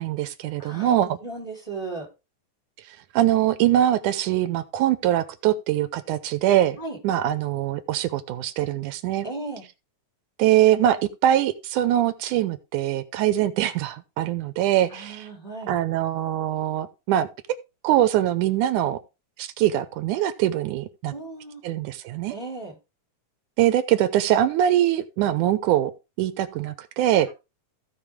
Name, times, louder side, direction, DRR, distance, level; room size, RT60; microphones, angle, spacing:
voice 1, 0.0-1.1 3.1-6.8 7.0-9.3 10.4-15.3 15.7-17.3 17.8-19.0 19.4-21.1 21.6-22.3 23.6-25.9 26.2-27.3, right 12 dB, 80° right, 2.2 m, -22 dB
voice 2, 0.6-2.1 6.8-7.0 9.2-9.7 14.9-15.8 21.1-21.6 22.3-22.7, right 2 dB, 10° left, 3.3 m, -36 dB
16.0 x 5.3 x 3.5 m
omnidirectional pair, 3.5 m